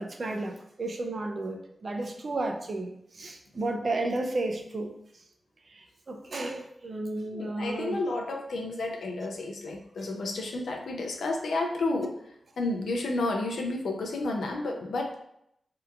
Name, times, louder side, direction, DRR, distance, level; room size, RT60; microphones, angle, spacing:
voice 1, 0.0-4.9 5.7-8.0, right 2 dB, 55° right, 3 dB, 0.4 m, -33 dB
voice 2, 7.3-12.2 12.6-15.1, left 2 dB, 80° left, 1 dB, 0.4 m, -31 dB
2.8 x 2.3 x 2.3 m, 0.75 s
cardioid pair, 45°, 0 cm